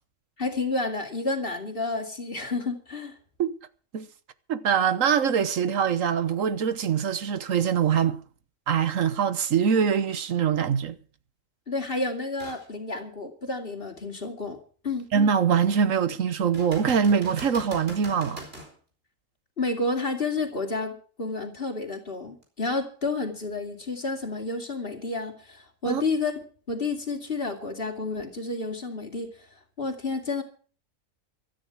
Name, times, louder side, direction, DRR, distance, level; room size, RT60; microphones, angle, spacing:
voice 1, 0.4-3.2 11.7-14.6 14.8-15.1 19.6-26.3 26.7-29.3 29.8-30.4, left 3 dB, 45° left, 2.9 m, -30 dB
voice 2, 4.5-8.2 8.7-11.0 15.1-18.4 25.9-26.0, right 7 dB, 75° right, 1.4 m, -23 dB
sound 1, 12.4-12.7 13.2-13.3 16.5-18.7 22.4-22.5, right 1 dB, 45° right, 4.8 m, -42 dB
16.5 x 13.0 x 4.8 m
omnidirectional pair, 1.4 m